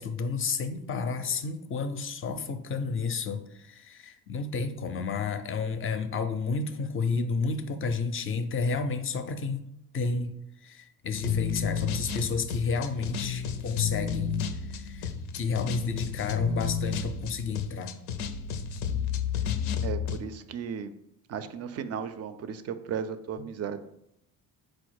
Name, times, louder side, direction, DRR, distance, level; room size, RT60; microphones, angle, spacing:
voice 1, 0.0-9.6 9.9-10.3 10.6-14.4 14.7-17.9, left 4 dB, 35° left, 9 dB, 0.5 m, -31 dB
sound 1, 11.1-20.2, left 7 dB, 85° left, 0.5 m, -31 dB
voice 2, 19.8-20.9 21.3-23.8, right 7 dB, 45° right, 11 dB, 0.4 m, -35 dB
4.5 x 2.1 x 4.6 m, 0.79 s
cardioid pair, 85°, 38 cm